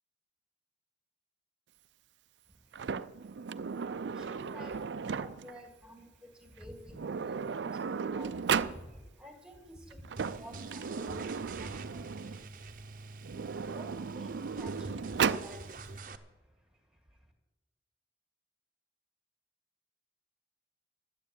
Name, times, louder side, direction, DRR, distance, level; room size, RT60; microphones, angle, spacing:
voice 1, 2.5-17.3, equal, 5° right, 3 dB, 2.0 m, -52 dB
Sliding door, 2.7-5.6 6.6-6.7 6.9-8.8 9.9-12.4 13.2-15.5, right 6 dB, 85° right, 0.4 m, -35 dB
sound 1, 10.2-16.2, right 3 dB, 50° right, 0.7 m, -46 dB
12.0 x 8.4 x 8.6 m, 1.2 s
head